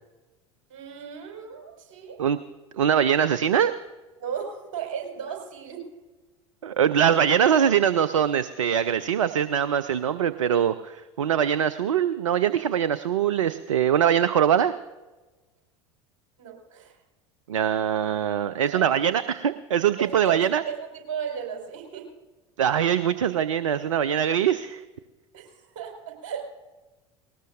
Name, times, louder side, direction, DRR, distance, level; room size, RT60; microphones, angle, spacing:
voice 1, 0.7-2.2 4.2-5.9 16.4-16.9 18.7-19.0 20.0-20.4 20.6-22.1 25.3-26.6, right 7 dB, 50° right, 1 dB, 4.9 m, -35 dB
voice 2, 2.8-3.7 6.6-14.7 17.5-20.6 22.6-24.8, right 9 dB, 70° right, 14 dB, 0.5 m, -22 dB
19.5 x 19.0 x 2.6 m, 1.2 s
figure-of-eight pair, 75°, 17 cm